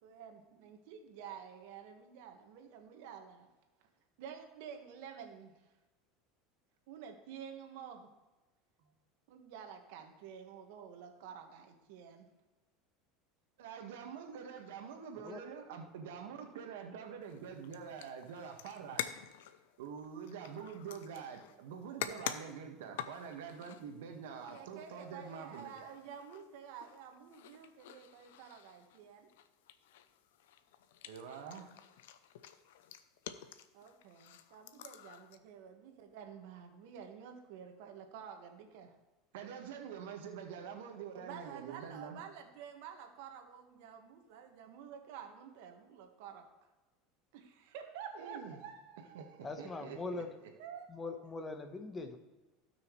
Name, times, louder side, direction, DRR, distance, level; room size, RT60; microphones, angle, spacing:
voice 1, 0.0-3.5 3.8-3.9 4.2-5.7 6.9-8.1 8.8-8.9 9.3-12.3 24.5-29.3 33.7-38.9 41.1-46.4 47.3-49.8 50.6-51.2, right 8 dB, 75° right, 4 dB, 1.7 m, -50 dB
voice 2, 13.6-19.1 19.8-25.9 31.0-31.7 39.3-42.2 48.1-48.6 49.1-50.2, right 7 dB, 90° right, 3 dB, 1.6 m, -46 dB
sound 1, 17.2-35.4, left 11 dB, 90° left, 0.6 m, -48 dB
voice 3, 49.4-50.3 50.9-52.2, left 3 dB, 20° left, 7 dB, 1.1 m, -41 dB
17.0 x 6.2 x 3.2 m, 1.1 s
supercardioid pair, 130°, 0 cm